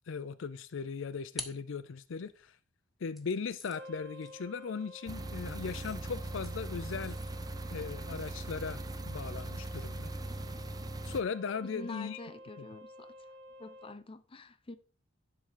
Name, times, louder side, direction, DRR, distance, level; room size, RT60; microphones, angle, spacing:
voice 1, 0.1-2.6 3.0-7.2 7.7-10.1 11.0-12.2, left 5 dB, 70° left, 0.5 m, -38 dB
sound 1, 0.7-2.4 3.1-10.7, left 1 dB, ahead, 1.2 m, -52 dB
sound 2, 3.7-13.9, left 1 dB, 65° right, 0.8 m, -51 dB
sound 3, 5.1-11.2, right 2 dB, 20° right, 0.5 m, -40 dB
voice 2, 11.6-13.3 13.6-14.8, left 2 dB, 30° left, 0.7 m, -46 dB
11.0 x 3.8 x 6.7 m
head